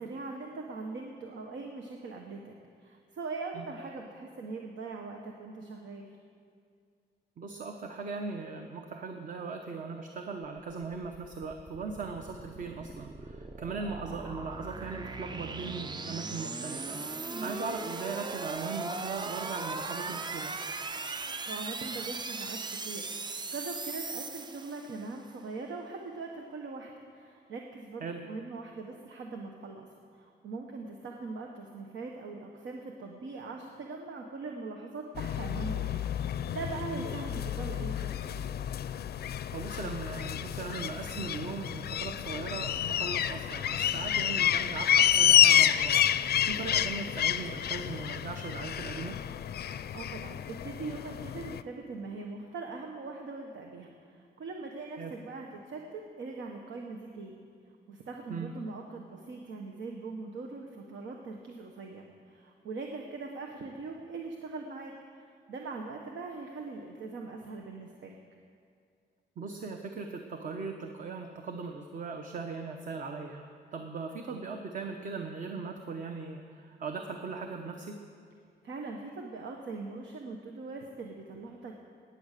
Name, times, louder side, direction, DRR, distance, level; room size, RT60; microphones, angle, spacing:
voice 1, 0.0-2.5 2.8-6.1 17.3-17.5 21.4-38.3 49.6-57.5 57.9-68.2 78.6-81.7, right 3 dB, 85° right, 2 dB, 1.2 m, -41 dB
voice 2, 7.4-20.5 28.0-28.2 36.9-37.1 39.5-49.2 55.0-55.1 58.3-58.5 69.4-78.0, right 4 dB, 45° right, 4 dB, 0.9 m, -39 dB
sound 1, 10.9-25.2, right 3 dB, 25° right, 0.4 m, -39 dB
sound 2, 35.1-51.6, left 10 dB, 60° left, 0.4 m, -29 dB
15.5 x 9.7 x 6.7 m, 2.2 s
wide cardioid pair, 170°, 19 cm